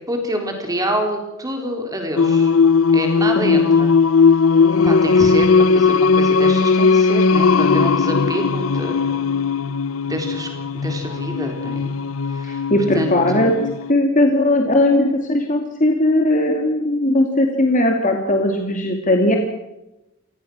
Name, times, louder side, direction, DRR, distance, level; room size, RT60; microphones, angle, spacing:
voice 1, 0.1-2.5 2.9-3.9 4.8-9.2 10.1-10.5 10.7-11.9 12.3-12.6 12.9-13.6, equal, 15° right, 3 dB, 3.9 m, -27 dB
Singing, 2.2-13.9, left 5 dB, 75° left, 0.7 m, -17 dB
voice 2, 12.4-13.5 13.9-19.4, left 1 dB, 40° left, 3 dB, 2.5 m, -18 dB
27.0 x 18.0 x 6.3 m, 0.93 s
head